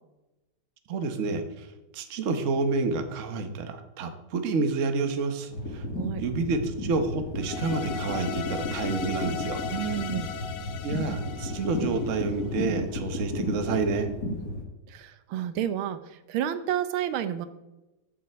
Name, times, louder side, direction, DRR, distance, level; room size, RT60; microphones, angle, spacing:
voice 1, 0.9-5.9 6.2-10.0 10.8-14.1, right 4 dB, 45° right, 7 dB, 1.2 m, -29 dB
sound 1, 5.5-14.6, left 1 dB, 45° left, 2.2 m, -33 dB
sound 2, 7.4-12.6, left 7 dB, 70° left, 1.2 m, -38 dB
voice 2, 9.7-10.3 14.9-17.5, right 10 dB, 85° right, 12 dB, 1.6 m, -30 dB
7.6 x 6.7 x 7.9 m, 1.0 s
omnidirectional pair, 2.2 m